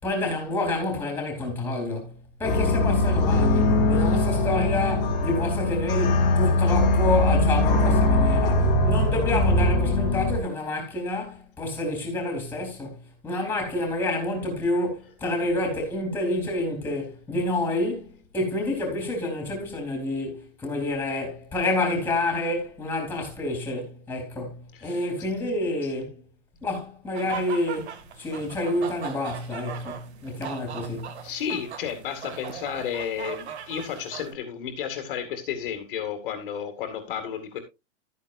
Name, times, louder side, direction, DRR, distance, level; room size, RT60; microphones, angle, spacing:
voice 1, 0.0-26.2 26.6-31.1, left 2 dB, 5° left, 3.6 m, -28 dB
sound 1, 2.4-10.4, left 2 dB, 25° left, 2.3 m, -21 dB
sound 2, 27.1-34.3, right 8 dB, 60° right, 2.3 m, -39 dB
voice 2, 31.2-37.6, left 8 dB, 45° left, 2.2 m, -32 dB
13.0 x 9.5 x 2.6 m
hypercardioid pair, 170°, 37 cm